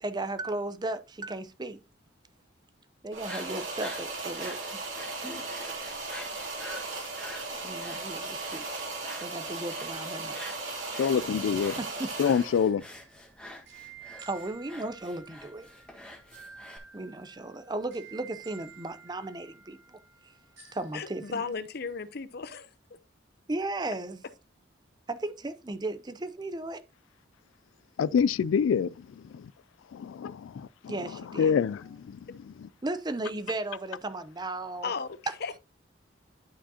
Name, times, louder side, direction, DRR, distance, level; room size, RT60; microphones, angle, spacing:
voice 1, 0.0-1.8 3.0-4.6 7.5-8.7 9.2-10.4 11.8-12.1 14.2-15.7 16.9-20.0 20.7-21.5 23.5-24.2 25.1-26.8 30.9-31.6 32.8-34.9, right 2 dB, 20° right, 0.6 m, -35 dB
sound 1, 3.1-16.8, left 1 dB, 5° left, 1.6 m, -47 dB
sound 2, 3.1-12.7, right 3 dB, 80° right, 3.1 m, -37 dB
sound 3, 10.3-21.5, right 6 dB, 60° right, 3.2 m, -52 dB
voice 2, 11.0-11.7 12.2-12.8 28.0-28.9 29.3-29.4 29.9-30.9 31.4-32.2 32.6-32.7, left 7 dB, 80° left, 0.3 m, -26 dB
voice 3, 20.9-22.7 34.8-35.5, left 5 dB, 55° left, 0.7 m, -35 dB
11.5 x 5.0 x 2.8 m
head